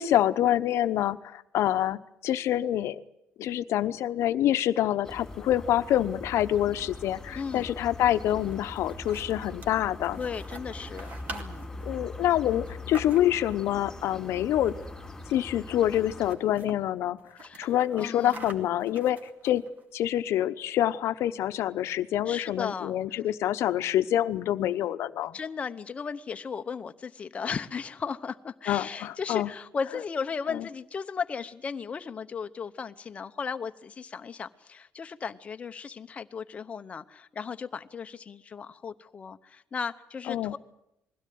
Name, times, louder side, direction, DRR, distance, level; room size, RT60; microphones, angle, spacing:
voice 1, 0.0-3.0 3.4-10.2 11.8-14.8 15.3-17.2 17.6-19.6 19.9-25.4 28.7-29.5 30.5-30.6 40.3-40.5, left 12 dB, 65° left, 12 dB, 0.9 m, -26 dB
sound 1, 5.0-16.4, left 2 dB, 10° left, 3.4 m, -42 dB
voice 2, 7.4-7.7 10.2-11.7 17.4-18.5 22.3-23.2 25.3-40.6, left 6 dB, 25° left, 9 dB, 0.9 m, -36 dB
sound 2, 7.9-13.6 14.6-15.0 15.3-15.4 15.7-16.8 17.2-19.8, right 2 dB, 35° right, 2.4 m, -46 dB
21.5 x 16.5 x 9.4 m, 0.83 s
cardioid pair, 165°, 5 cm